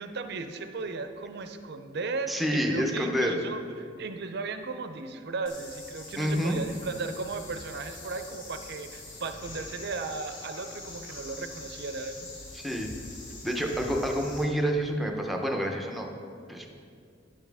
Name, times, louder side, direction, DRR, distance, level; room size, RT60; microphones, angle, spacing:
voice 1, 0.0-12.3, right 4 dB, 60° right, 8 dB, 0.6 m, -36 dB
voice 2, 2.3-3.4 6.2-6.6 12.5-12.9 13.4-16.1 16.5-16.7, equal, ahead, 2 dB, 0.7 m, -28 dB
sound 1, 5.5-14.4, left 2 dB, 75° left, 1.6 m, -44 dB
10.5 x 7.2 x 3.5 m, 2.3 s
head